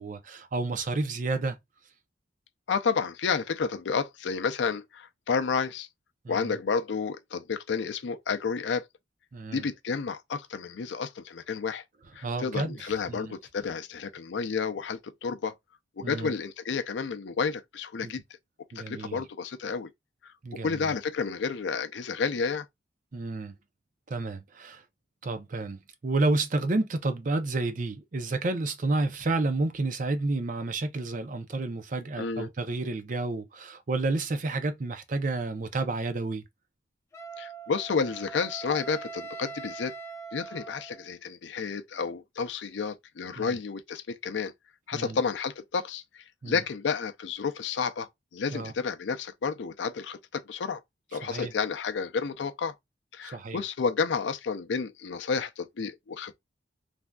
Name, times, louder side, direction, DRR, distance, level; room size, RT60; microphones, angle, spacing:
voice 1, 0.0-1.6 6.2-6.6 9.3-9.6 12.2-13.3 16.0-16.3 18.0-18.1 18.7-19.2 20.4-20.9 23.1-23.5 24.1-24.8 25.2-36.4 43.4-43.5 44.9-45.2 46.4-46.6 48.5-48.7 51.2-51.5 53.2-53.6, right 2 dB, 45° right, 0.5 m, -30 dB
voice 2, 2.7-5.9 6.3-8.9 9.5-11.8 12.1-15.5 16.0-18.2 18.8-19.9 20.2-20.3 20.6-22.7 32.2-32.5 37.4-39.9 40.3-44.5 44.9-46.0 46.5-50.8 51.1-52.7 53.1-56.3, left 5 dB, 90° left, 0.5 m, -31 dB
Wind instrument woodwind instrument, 37.1-41.1, right 4 dB, 15° left, 0.6 m, -42 dB
3.3 x 2.5 x 2.2 m
head